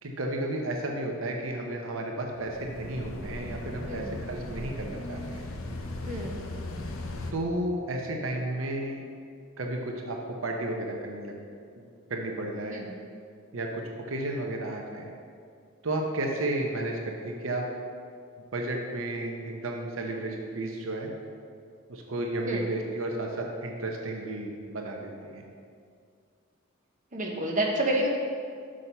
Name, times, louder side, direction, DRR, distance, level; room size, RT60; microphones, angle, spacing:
voice 1, 0.0-5.5 7.3-9.1 9.6-11.4 11.8-11.9 12.1-12.8 13.5-15.1 15.8-17.7 18.5-21.1 21.9-25.4, right 1 dB, 75° right, 1 dB, 0.8 m, -33 dB
sound 1, 2.3-7.3, left 2 dB, 80° left, 0.8 m, -37 dB
voice 2, 27.1-28.1, right 1 dB, 40° right, -1 dB, 0.9 m, -29 dB
6.3 x 5.6 x 5.5 m, 2.2 s
head